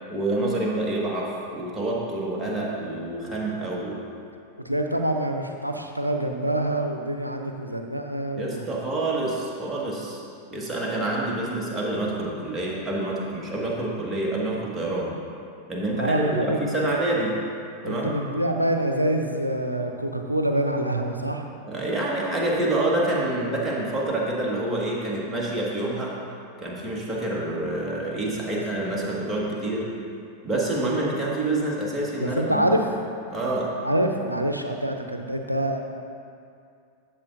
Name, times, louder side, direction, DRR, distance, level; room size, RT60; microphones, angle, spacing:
voice 1, 0.1-4.0 8.4-10.2 10.5-15.1 15.7-17.3 17.8-18.2 21.7-26.1 26.6-29.9 30.4-32.8 33.3-33.7, right 2 dB, 10° right, -4 dB, 1.8 m, -27 dB
voice 2, 4.6-8.6 16.0-16.6 16.8-17.0 17.8-21.5 32.2-32.9 33.8-35.8, right 1 dB, 90° right, 4 dB, 0.6 m, -26 dB
12.5 x 7.6 x 2.6 m, 2.4 s
figure-of-eight pair, 90°, 0 cm